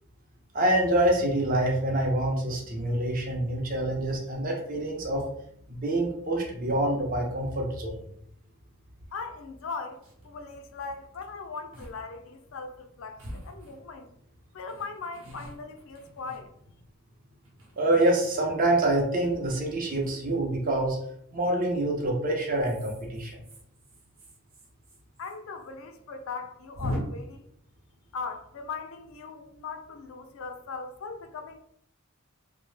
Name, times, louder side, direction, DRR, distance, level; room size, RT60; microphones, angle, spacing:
voice 1, 0.5-5.2 5.7-8.0 17.8-21.0 21.3-23.4, right 1 dB, 40° right, 0.6 m, -26 dB
sound 1, 9.0-9.1 9.6-9.7 9.9-10.3 11.1-11.3 11.7-12.0 12.3-12.4 13.2-14.1 14.7-16.9 17.4-18.2 19.9-20.2 21.4-21.8 22.5-25.4 25.6-25.7 26.0-26.1 26.7-27.0, left 1 dB, 70° right, 0.9 m, -41 dB
voice 2, 9.1-14.1 14.5-16.5 25.2-27.5 28.1-31.6, left 4 dB, 70° left, 0.4 m, -39 dB
2.7 x 2.0 x 3.2 m
head